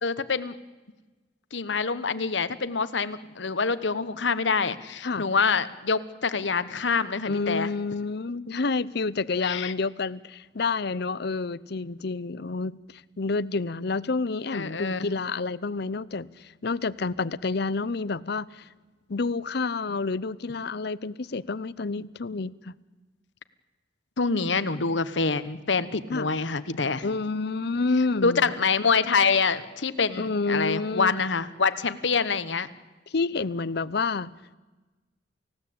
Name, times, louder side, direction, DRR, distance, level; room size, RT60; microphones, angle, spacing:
voice 1, 0.0-0.6 1.5-7.7 9.4-9.7 14.5-15.1 24.2-27.1 28.2-32.7, left 4 dB, 75° left, 13 dB, 1.2 m, -26 dB
voice 2, 7.3-18.6 19.1-22.7 26.1-26.3 27.0-28.4 30.2-31.1 33.1-34.3, left 3 dB, 60° left, 18 dB, 0.7 m, -29 dB
29.0 x 16.5 x 8.6 m, 1.2 s
head